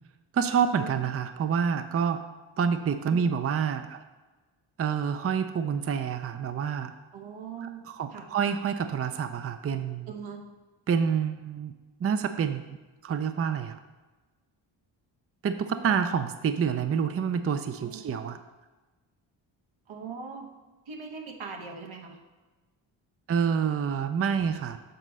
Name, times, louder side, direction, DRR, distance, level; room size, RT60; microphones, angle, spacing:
voice 1, 0.3-2.2 2.6-4.0 4.8-6.9 7.9-10.1 10.9-11.7 12.0-12.6 13.0-13.8 15.4-18.4 23.3-24.8, right 7 dB, 30° right, 9 dB, 0.5 m, -27 dB
voice 2, 7.1-7.8 8.1-8.3 10.1-10.5 15.8-15.9 17.8-18.0 19.9-20.5 20.9-22.2, right 6 dB, 80° right, 1 dB, 1.4 m, -40 dB
7.8 x 4.0 x 6.2 m, 1.2 s
cardioid pair, 80°, 47 cm